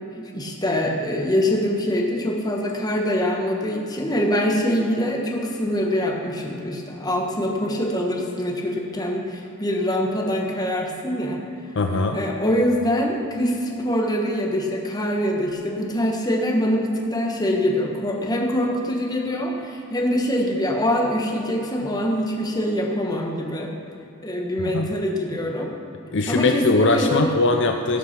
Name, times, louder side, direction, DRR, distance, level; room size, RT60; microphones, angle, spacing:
voice 1, 0.3-11.4 12.1-23.7 24.2-25.7 26.3-27.4, equal, 20° left, 0 dB, 1.3 m, -24 dB
voice 2, 11.8-12.2 24.6-24.9 26.1-28.0, left 3 dB, 55° left, 5 dB, 0.6 m, -21 dB
17.0 x 5.8 x 5.9 m, 2.6 s
head